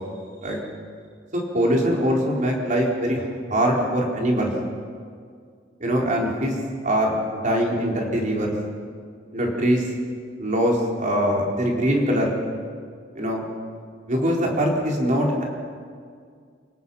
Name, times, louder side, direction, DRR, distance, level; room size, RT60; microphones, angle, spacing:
voice 1, 1.3-3.2 3.5-4.5 5.8-6.5 6.8-8.5 9.3-9.8 10.4-12.4 13.1-13.4 14.1-15.4, equal, 45° right, -1 dB, 4.4 m, -22 dB
29.5 x 18.5 x 5.8 m, 2.1 s
head